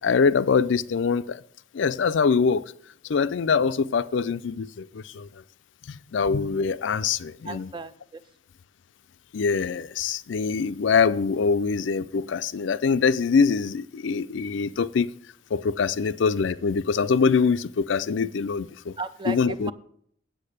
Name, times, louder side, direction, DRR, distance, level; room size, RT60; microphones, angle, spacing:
voice 1, 0.0-1.4 1.7-2.6 3.0-5.3 5.9-7.7 9.3-15.1 15.5-18.9 19.3-19.7, left 5 dB, 70° left, 0.4 m, -24 dB
voice 2, 7.4-8.2 19.0-19.7, right 3 dB, 25° right, 0.4 m, -35 dB
8.6 x 8.0 x 6.6 m
head